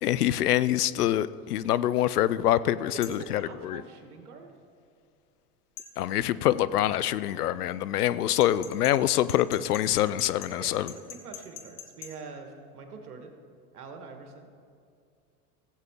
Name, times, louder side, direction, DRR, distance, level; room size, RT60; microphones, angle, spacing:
voice 1, 0.0-3.8 6.0-10.9, left 12 dB, 90° left, 17 dB, 0.5 m, -25 dB
sound 1, 3.0-3.3 5.8-5.9 8.4-12.1, left 10 dB, 60° left, 1.6 m, -43 dB
voice 2, 3.1-4.5 10.6-13.3 13.7-14.5, right 4 dB, 85° right, 5 dB, 1.6 m, -44 dB
16.0 x 8.1 x 3.6 m, 2.4 s
hypercardioid pair, 90°, 44 cm